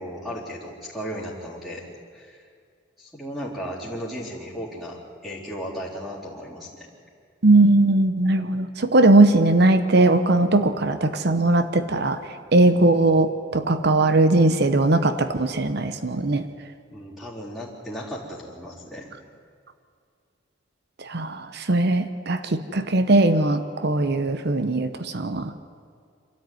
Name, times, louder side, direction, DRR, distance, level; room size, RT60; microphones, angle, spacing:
voice 1, 0.0-1.9 2.1-2.4 3.0-6.9 16.9-19.1, equal, ahead, -7 dB, 4.1 m, -35 dB
voice 2, 7.4-12.2 12.5-16.4 21.0-25.5, right 2 dB, 55° right, 10 dB, 0.9 m, -19 dB
26.0 x 13.5 x 9.5 m, 2.2 s
head